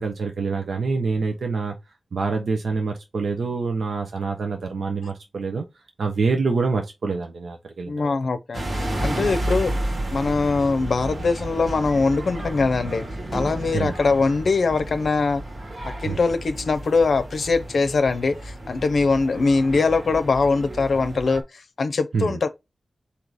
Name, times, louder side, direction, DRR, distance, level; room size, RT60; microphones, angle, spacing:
voice 1, 0.0-1.7 2.1-5.6 6.0-8.2 13.7-13.9 16.0-16.2 22.1-22.4, right 4 dB, 80° right, 0.9 m, -26 dB
voice 2, 7.9-13.0 13.3-15.4 15.8-22.5, left 4 dB, 70° left, 0.6 m, -22 dB
sound 1, 8.5-21.4, right 1 dB, 55° right, 1.6 m, -32 dB
4.0 x 2.8 x 4.6 m
wide cardioid pair, 80°, 0 cm